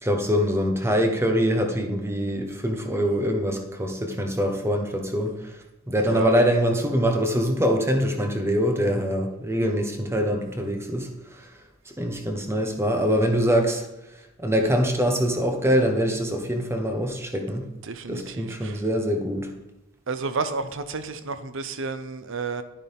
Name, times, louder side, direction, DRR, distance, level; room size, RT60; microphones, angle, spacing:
voice 1, 0.0-5.3 5.9-11.1 11.9-13.9 14.4-17.6 18.1-19.5, equal, 15° right, 3 dB, 1.2 m, -24 dB
voice 2, 17.8-18.8 20.1-22.6, right 4 dB, 65° right, 11 dB, 0.8 m, -31 dB
11.5 x 9.9 x 3.6 m, 0.97 s
head